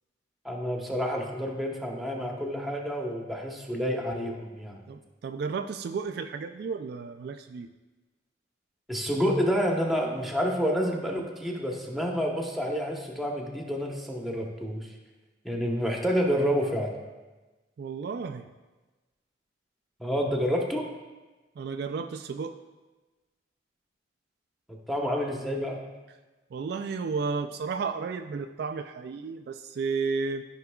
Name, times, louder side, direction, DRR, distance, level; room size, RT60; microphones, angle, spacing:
voice 1, 0.4-4.8 8.9-14.9 15.4-16.9 20.0-20.9 24.7-25.8, equal, ahead, -1 dB, 0.9 m, -29 dB
voice 2, 4.9-7.7 17.8-18.5 21.6-22.6 26.5-30.5, right 5 dB, 60° right, 8 dB, 0.3 m, -33 dB
13.0 x 5.8 x 2.3 m, 1.2 s
head